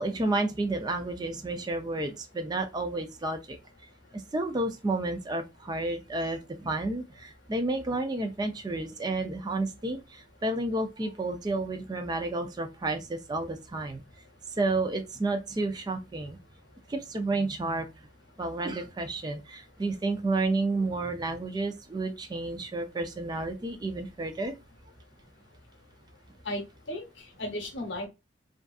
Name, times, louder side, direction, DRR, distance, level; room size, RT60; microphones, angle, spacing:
voice 1, 0.0-3.6 4.1-14.0 14.6-16.4 16.9-17.9 18.4-24.5, right 2 dB, 20° right, 0.3 m, -31 dB
voice 2, 26.4-28.1, left 1 dB, 80° left, 0.8 m, -35 dB
2.6 x 2.3 x 2.3 m
head